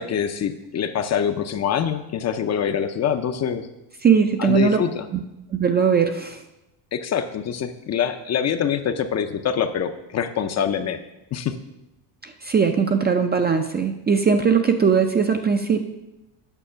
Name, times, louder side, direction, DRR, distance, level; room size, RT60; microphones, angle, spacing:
voice 1, 0.0-3.7 4.4-5.1 6.9-11.0 11.3-11.5, left 8 dB, 35° left, 9 dB, 0.5 m, -25 dB
voice 2, 4.0-4.8 5.1-5.2 5.5-6.4 12.2-15.8, right 6 dB, 20° right, 5 dB, 0.4 m, -20 dB
9.0 x 6.2 x 5.6 m, 0.93 s
cardioid pair, 130°, 50 cm